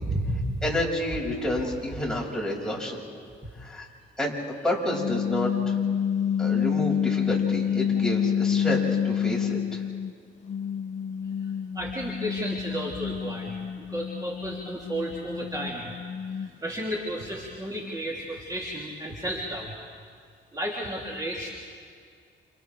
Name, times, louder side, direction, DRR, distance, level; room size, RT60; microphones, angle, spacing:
voice 1, 0.0-0.6 1.6-1.7 11.4-15.9 16.3-19.7 20.5-21.5, equal, 20° right, -4 dB, 3.4 m, -33 dB
voice 2, 0.6-3.0 3.6-3.9 4.2-4.3 4.6-5.7 6.4-9.8, left 1 dB, 5° left, -4 dB, 6.5 m, -29 dB
sound 1, 4.9-10.1 10.5-16.7, left 8 dB, 35° left, 0.5 m, -28 dB
30.0 x 29.0 x 3.6 m, 2.2 s
cardioid pair, 90°, 20 cm